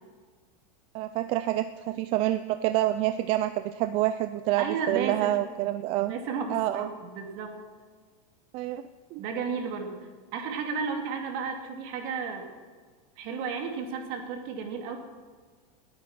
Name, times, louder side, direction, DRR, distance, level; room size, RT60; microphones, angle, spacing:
voice 1, 0.9-6.1 6.5-6.9 8.5-8.8 9.1-9.2, right 14 dB, 30° right, 11 dB, 0.3 m, -27 dB
voice 2, 4.6-5.3 6.1-7.6 9.2-10.1 10.3-12.5 13.2-15.0, right 5 dB, 45° right, 3 dB, 2.4 m, -33 dB
19.0 x 8.5 x 6.0 m, 1.5 s
supercardioid pair, 165°, 19 cm